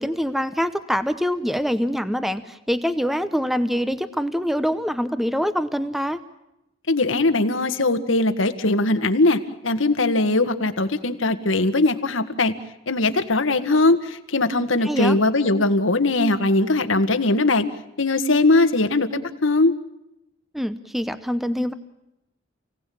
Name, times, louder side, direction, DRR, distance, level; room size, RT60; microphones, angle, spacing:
voice 1, 0.0-6.2 14.8-15.2 20.5-21.7, equal, ahead, 11 dB, 0.9 m, -24 dB
voice 2, 6.9-12.5 12.9-17.7 18.0-19.7, left 2 dB, 85° left, 9 dB, 1.9 m, -20 dB
29.0 x 18.0 x 8.7 m, 0.86 s
head